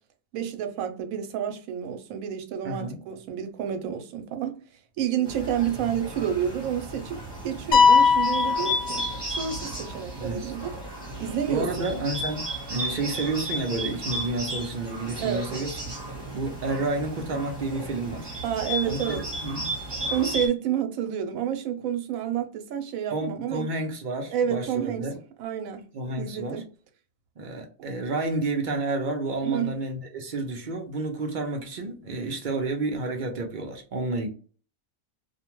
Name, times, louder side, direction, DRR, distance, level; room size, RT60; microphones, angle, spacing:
voice 1, 0.3-4.6 5.0-10.7 11.2-11.9 15.2-15.5 18.4-19.3 20.1-23.7 24.3-25.1 25.4-25.9 26.2-26.7 29.4-29.8, right 9 dB, 90° right, 1.0 m, -29 dB
voice 2, 2.6-3.0 10.2-10.5 11.5-15.8 16.3-18.3 18.8-19.7 23.1-25.2 25.9-26.6 27.4-34.3, right 2 dB, 65° right, 0.5 m, -30 dB
Bird, 5.3-20.5, right 1 dB, 20° right, 0.9 m, -34 dB
sound 1, 7.7-9.6, left 5 dB, 65° left, 0.9 m, -20 dB
2.4 x 2.1 x 2.9 m
omnidirectional pair, 1.4 m